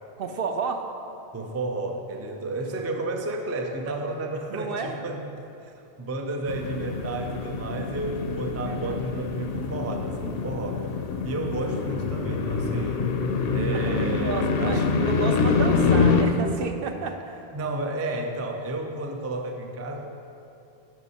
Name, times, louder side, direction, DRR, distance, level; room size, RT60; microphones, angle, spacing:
voice 1, 0.2-0.9 4.5-5.0 8.6-9.0 13.7-13.9 14.2-17.4, right 5 dB, 65° right, 6 dB, 0.7 m, -32 dB
voice 2, 1.3-5.3 5.6-5.7 6.0-10.9 11.2-13.1 13.5-15.1 17.5-20.1, right 2 dB, 25° right, 3 dB, 0.3 m, -32 dB
sound 1, 6.5-16.2, left 4 dB, 70° left, 0.8 m, -25 dB
9.2 x 5.4 x 4.2 m, 2.7 s
omnidirectional pair, 1.1 m